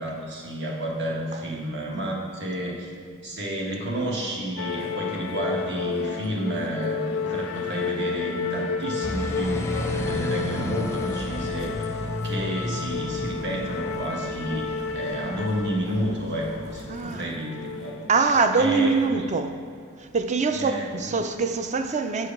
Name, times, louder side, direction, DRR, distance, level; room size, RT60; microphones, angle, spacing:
voice 1, 0.0-2.9 3.2-11.9 12.2-18.1 18.5-19.3 20.5-21.2, right 1 dB, 55° right, 1.5 m, -31 dB
sound 1, 4.6-19.1, left 5 dB, 80° left, 0.5 m, -32 dB
sound 2, 9.0-17.1, left 1 dB, 15° left, 0.6 m, -34 dB
voice 2, 16.9-17.3 18.1-19.5 20.0-22.3, right 4 dB, 35° right, 0.5 m, -23 dB
7.9 x 4.9 x 5.9 m
head